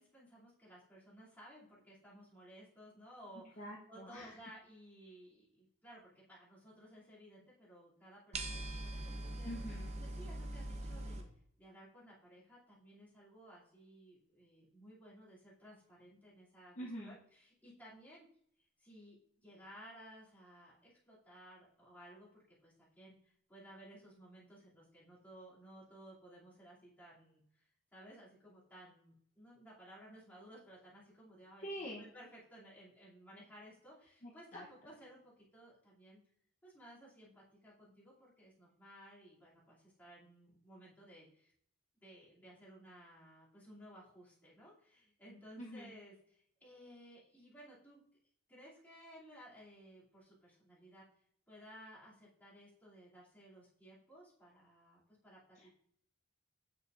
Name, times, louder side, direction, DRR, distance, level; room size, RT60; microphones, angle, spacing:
voice 1, 0.0-8.6 8.9-9.5 10.0-11.3 11.6-18.3 18.6-36.2 36.6-41.5 42.0-48.0 48.5-55.7, equal, 10° left, -9 dB, 2.6 m, -57 dB
voice 2, 3.6-4.4 9.4-9.9 16.8-17.2 31.6-32.0 34.2-34.6 45.6-45.9 55.6-55.7, equal, 35° left, -3 dB, 0.8 m, -46 dB
sound 1, 8.3-11.2, right 1 dB, 30° right, 0.7 m, -42 dB
7.5 x 6.3 x 2.5 m, 0.67 s
head